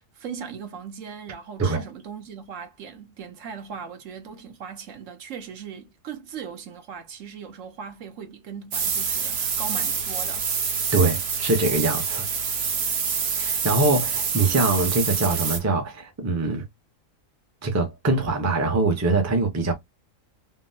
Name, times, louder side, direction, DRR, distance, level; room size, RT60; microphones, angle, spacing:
voice 1, 0.0-10.5, right 7 dB, 75° right, 1.1 m, -39 dB
sound 1, 8.7-15.6, right 6 dB, 60° right, 0.9 m, -26 dB
voice 2, 10.9-12.2 13.3-16.6 17.6-19.7, right 3 dB, 20° right, 0.5 m, -23 dB
3.6 x 2.0 x 2.6 m
omnidirectional pair, 1.4 m